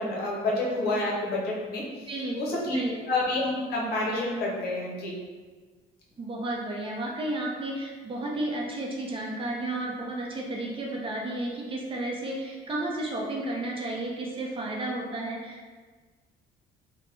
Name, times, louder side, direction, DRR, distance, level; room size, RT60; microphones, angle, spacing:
voice 1, 0.0-1.8 2.3-2.8 3.1-5.1, left 2 dB, 65° left, -4 dB, 0.9 m, -28 dB
voice 2, 2.1-3.0 6.2-15.7, right 1 dB, 30° right, -2 dB, 0.6 m, -32 dB
2.9 x 2.2 x 3.2 m, 1.4 s
cardioid pair, 110°, 17 cm